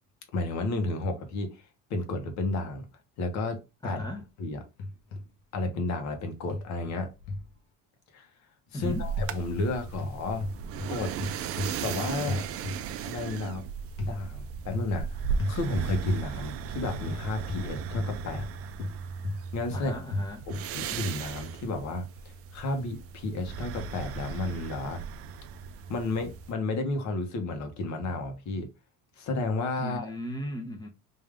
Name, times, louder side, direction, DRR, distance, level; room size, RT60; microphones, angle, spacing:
voice 1, 0.3-1.6 1.9-2.9 3.2-4.0 4.4-4.6 5.5-7.1 8.1-8.3 8.7-10.5 10.9-11.1 11.8-12.5 13.1-13.6 14.0-15.2 15.5-18.5 19.5-19.9 20.5-22.0 22.5-25.0 25.9-28.7 29.2-30.1, left 2 dB, 55° left, 1.1 m, -32 dB
voice 2, 3.8-4.3 8.7-9.0 19.7-20.5 29.8-30.9, equal, 10° left, 0.8 m, -37 dB
sound 1, 4.0-4.5 4.8-5.2 6.5-7.5 8.7-9.7 10.0-13.0 14.0-14.2 14.7-15.0 15.4-15.6 16.1-16.2 17.0-18.5 18.8-20.7, left 2 dB, 80° left, 1.1 m, -34 dB
sound 2, 8.8-26.5, right 6 dB, 45° right, 0.4 m, -37 dB
3.6 x 2.7 x 3.4 m
cardioid pair, 135°, 34 cm